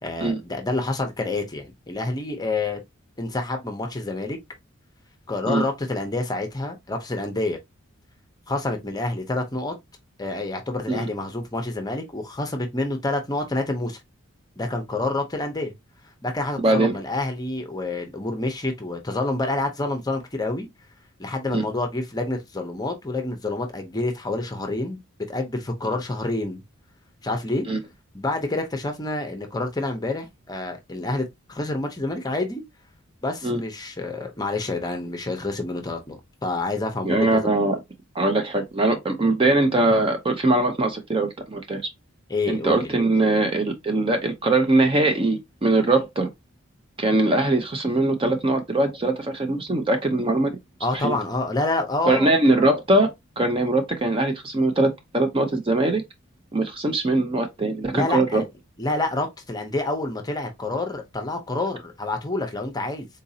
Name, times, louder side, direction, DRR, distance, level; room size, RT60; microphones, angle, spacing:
voice 1, 0.0-2.8 3.2-4.4 5.3-7.6 8.5-9.8 10.2-14.0 14.6-15.7 16.2-20.7 21.2-25.0 25.3-26.6 27.2-27.7 28.1-32.6 33.2-37.4 42.3-42.9 50.8-52.3 57.9-58.4 58.8-63.1, left 2 dB, 20° left, 0.6 m, -28 dB
voice 2, 16.6-17.0 21.5-21.7 27.7-27.8 33.4-33.6 37.0-37.8 38.1-41.9 42.5-46.3 47.0-50.6 50.9-51.1 52.1-56.0 56.5-58.4, right 2 dB, 25° right, 0.5 m, -21 dB
3.9 x 2.6 x 2.7 m
head